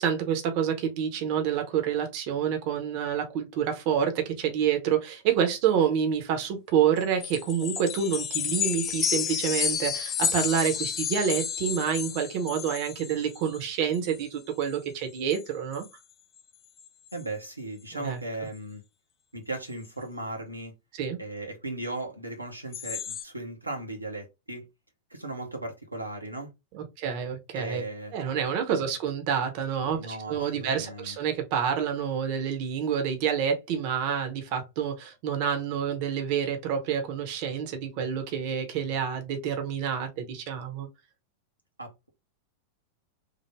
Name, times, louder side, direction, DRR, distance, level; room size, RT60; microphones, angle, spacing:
voice 1, 0.0-15.8 18.0-18.2 20.9-21.2 26.7-27.8 28.1-40.9, right 8 dB, 45° right, 0.7 m, -28 dB
sound 1, 7.0-13.6 13.9-14.3 14.6-14.8 15.2-15.4 15.7-15.9 16.4-16.5 16.8-17.2 22.7-23.2, left 8 dB, 30° left, 0.4 m, -31 dB
voice 2, 17.1-18.8 19.3-20.7 21.2-24.6 25.1-26.5 27.5-28.1 29.9-31.2 41.8-42.1, right 2 dB, 85° right, 0.7 m, -37 dB
3.3 x 2.0 x 3.3 m
figure-of-eight pair, 90°, 0 cm